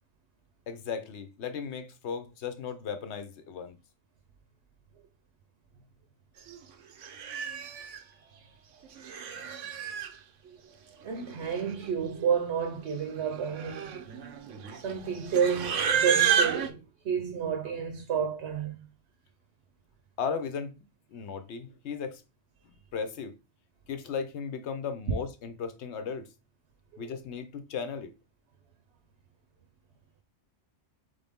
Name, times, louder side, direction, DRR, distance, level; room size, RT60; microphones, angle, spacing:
voice 1, 0.7-3.8 20.2-22.2 22.9-23.3 23.9-26.3 27.0-28.1, left 6 dB, 70° left, 1.0 m, -36 dB
Livestock farm animals working animals, 6.5-6.6 7.0-8.0 8.9-10.1 11.2-11.3 11.5-11.9 12.2-12.5 13.1-16.7, right 8 dB, 85° right, 1.1 m, -30 dB
voice 2, 11.0-14.0 14.7-18.8 26.9-27.0, right 7 dB, 65° right, 1.0 m, -30 dB
4.0 x 3.5 x 3.5 m
omnidirectional pair, 1.2 m